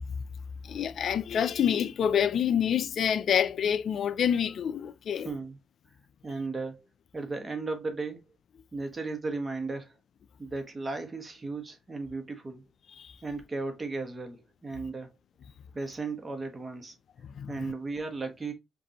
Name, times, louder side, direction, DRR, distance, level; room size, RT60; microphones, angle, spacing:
voice 1, 0.6-5.3 13.0-13.2 17.2-17.6, left 8 dB, 60° left, 0.3 m, -27 dB
voice 2, 5.1-5.6 6.2-6.9 7.1-8.2 8.7-10.0 10.4-12.6 13.2-15.1 15.7-16.9 17.5-18.5, right 3 dB, 25° right, 1.1 m, -35 dB
5.2 x 2.6 x 2.8 m
cardioid pair, 90°, 0 cm